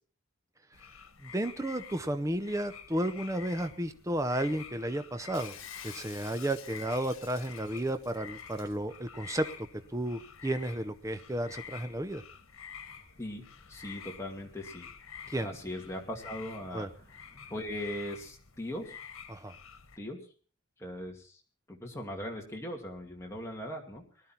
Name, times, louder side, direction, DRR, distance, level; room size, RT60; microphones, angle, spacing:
sound 1, 0.7-20.0, left 7 dB, 85° left, 1.5 m, -49 dB
voice 1, 1.2-5.6 5.8-9.5 9.9-12.2 15.3-15.5 16.7-16.9 19.3-19.5, right 1 dB, 15° right, 10 dB, 0.7 m, -33 dB
sound 2, 3.8-17.8, left 1 dB, 50° left, 6.0 m, -64 dB
Shatter, 5.3-8.8, left 9 dB, 70° left, 1.9 m, -50 dB
voice 2, 13.7-14.9 15.4-16.9 17.5-19.0 20.0-20.2 20.8-21.4 21.7-24.0, left 1 dB, 15° left, 0 dB, 2.5 m, -39 dB
20.0 x 12.5 x 4.4 m, 0.41 s
head